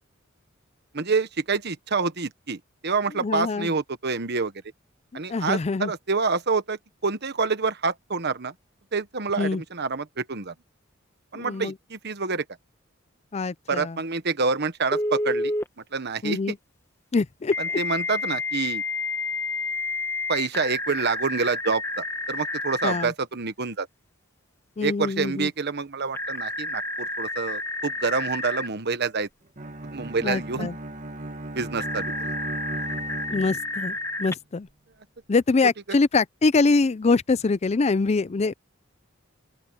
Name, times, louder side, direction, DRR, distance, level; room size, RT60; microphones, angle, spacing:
voice 1, 0.9-4.5 5.1-8.5 8.9-10.5 11.3-12.4 13.7-15.5 15.9-16.4 17.6-18.8 20.3-23.9 24.8-29.3 29.9-30.7 31.5-32.3, right 4 dB, 55° right, 1.3 m, -27 dB
voice 2, 3.2-3.7 5.3-5.9 9.4-9.6 11.3-11.7 13.3-14.0 16.2-16.6 17.1-17.8 22.8-23.1 24.8-25.5 30.2-30.8 33.3-34.7 35.3-38.5, left 3 dB, 35° left, 0.5 m, -24 dB
Telephone, 14.9-15.7 17.5-23.0 26.1-28.7 31.8-34.3, left 2 dB, 15° left, 1.1 m, -30 dB
Bowed string instrument, 29.6-34.0, right 1 dB, 40° right, 1.9 m, -36 dB
open air
head